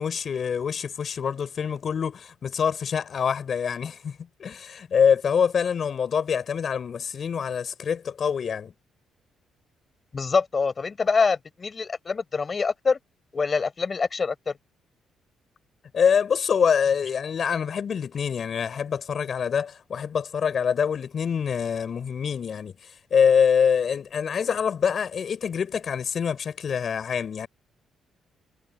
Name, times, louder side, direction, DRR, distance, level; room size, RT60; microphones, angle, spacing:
voice 1, 0.0-8.7 15.9-27.5, left 7 dB, 50° left, 5.3 m, -25 dB
voice 2, 10.1-13.0 13.3-14.5, left 4 dB, 35° left, 6.8 m, -25 dB
cardioid pair, 90°, 0 cm